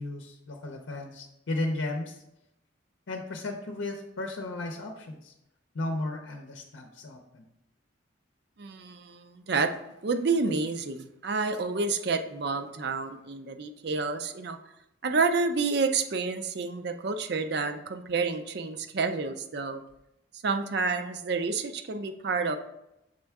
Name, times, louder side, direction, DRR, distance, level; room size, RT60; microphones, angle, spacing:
voice 1, 0.0-2.2 3.1-5.3 5.7-7.4, left 2 dB, 75° left, 2 dB, 0.6 m, -35 dB
voice 2, 8.6-9.8 10.0-14.6 15.0-19.8 20.3-22.6, right 4 dB, 55° right, 7 dB, 0.5 m, -29 dB
6.4 x 4.4 x 3.5 m, 0.86 s
head